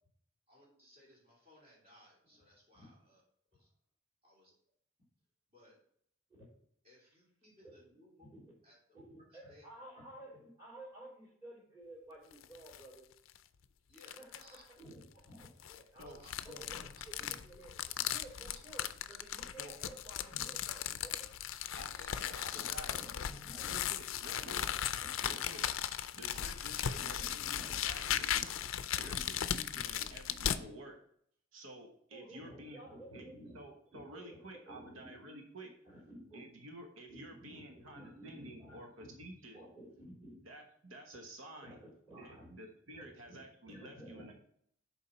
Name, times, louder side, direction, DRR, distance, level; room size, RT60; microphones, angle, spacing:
voice 1, 0.5-3.2 3.5-3.7 4.2-4.5 5.5-5.8 6.8-8.8 9.1-9.6 13.9-14.6 15.7-15.8 16.1-16.3 18.0-18.1 22.0-22.7, left 1 dB, 30° right, -5 dB, 3.0 m, -62 dB
voice 2, 8.2-8.5 8.9-13.1 14.0-14.4 14.8-15.5 15.8-16.1 16.4-17.7 18.0-21.3 22.5-23.8 24.4-24.6 25.0-25.4 26.9-27.7 28.0-28.4 29.0-29.2 30.4-30.6 32.1-33.6 33.9-35.1 35.9-36.5 37.1-39.1 39.5-40.4 41.6-42.5 42.9-43.4 43.6-44.3, right 1 dB, 15° right, -5 dB, 3.3 m, -53 dB
sound 1, 12.3-12.9 13.3-13.4 14.0-14.6 15.4-30.6, left 10 dB, 80° left, 0.4 m, -37 dB
voice 3, 21.7-23.0 23.6-24.7 25.2-25.7 26.1-28.5 28.9-31.0 31.5-32.8 33.1-33.3 33.5-35.7 36.3-39.6 40.4-41.8 42.1-44.3, right 1 dB, 85° right, 2 dB, 1.1 m, -51 dB
6.9 x 4.6 x 5.6 m, 0.66 s
head